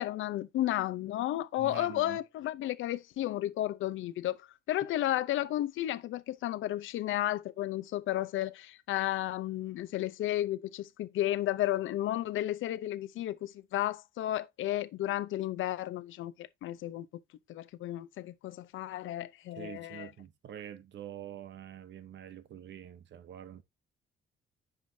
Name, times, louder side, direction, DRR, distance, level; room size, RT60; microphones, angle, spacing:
voice 1, 0.0-17.1 17.5-20.1, left 14 dB, 80° left, 0.7 m, -33 dB
voice 2, 1.6-2.2 19.6-23.6, right 10 dB, 65° right, 1.0 m, -46 dB
9.6 x 5.1 x 2.7 m
cardioid pair, 90°, 20 cm